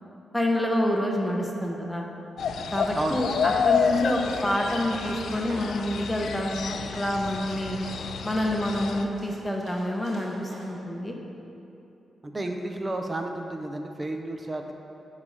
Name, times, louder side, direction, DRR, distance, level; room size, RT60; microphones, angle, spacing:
voice 1, 0.3-2.1 2.7-7.8 8.2-11.1, left 1 dB, 10° left, 0 dB, 0.8 m, -27 dB
sound 1, 2.4-9.0, left 6 dB, 75° left, 0.4 m, -29 dB
voice 2, 2.9-3.3 12.2-14.7, right 2 dB, 25° right, 4 dB, 0.5 m, -31 dB
sound 2, 3.8-10.7, right 1 dB, 75° right, 1.5 m, -46 dB
9.6 x 3.3 x 5.4 m, 2.8 s
cardioid pair, 110°, 0 cm